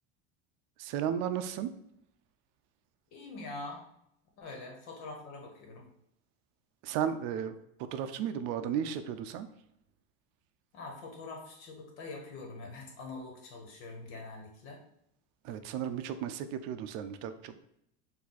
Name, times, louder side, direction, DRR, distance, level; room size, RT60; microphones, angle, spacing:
voice 1, 0.8-1.7 6.8-9.5 15.4-17.6, right 9 dB, 50° right, 10 dB, 0.5 m, -34 dB
voice 2, 3.1-3.8 4.4-5.8 10.7-14.8, left 3 dB, 80° left, 1 dB, 1.6 m, -44 dB
4.8 x 2.7 x 3.9 m, 0.75 s
supercardioid pair, 135°, 35 cm